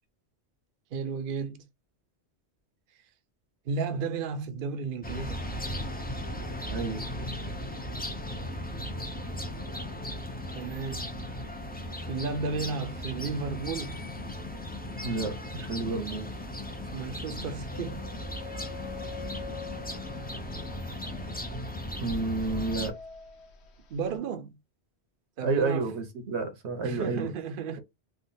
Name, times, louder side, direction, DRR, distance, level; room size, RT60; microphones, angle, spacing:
voice 1, 0.9-1.6 3.7-5.6 10.5-11.1 12.1-14.0 16.9-18.0 23.9-24.5 25.4-25.9 26.8-27.8, right 5 dB, 60° right, 0.7 m, -33 dB
sound 1, 5.0-22.9, left 1 dB, 15° left, 0.4 m, -37 dB
voice 2, 6.7-7.0 15.0-16.3 22.0-22.9 25.4-27.3, right 3 dB, 85° right, 1.2 m, -30 dB
sound 2, 17.7-24.2, left 7 dB, 80° left, 1.1 m, -46 dB
3.5 x 2.3 x 2.6 m
omnidirectional pair, 1.1 m